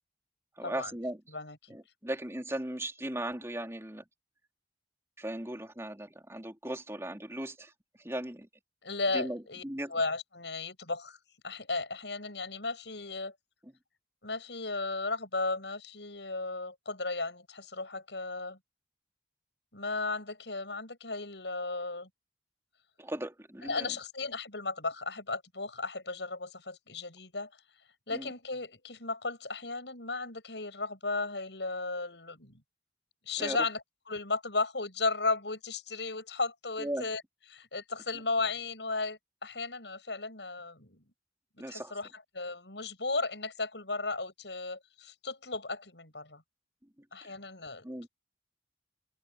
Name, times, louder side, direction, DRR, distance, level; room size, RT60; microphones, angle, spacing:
voice 1, 0.6-1.2 1.7-4.0 5.2-7.7 8.0-8.5 9.1-9.9 23.0-23.9 28.1-28.3 33.4-33.6 36.8-37.0 41.6-42.0 47.2-47.3 47.8-48.1, right 1 dB, 15° right, 3.3 m, -37 dB
voice 2, 1.3-1.8 8.8-9.6 9.9-11.2 11.4-13.3 14.2-18.6 19.7-22.1 23.6-27.6 28.1-32.6 33.3-37.2 37.5-41.0 41.7-46.4 47.1-47.8, left 3 dB, 75° left, 7.4 m, -35 dB
head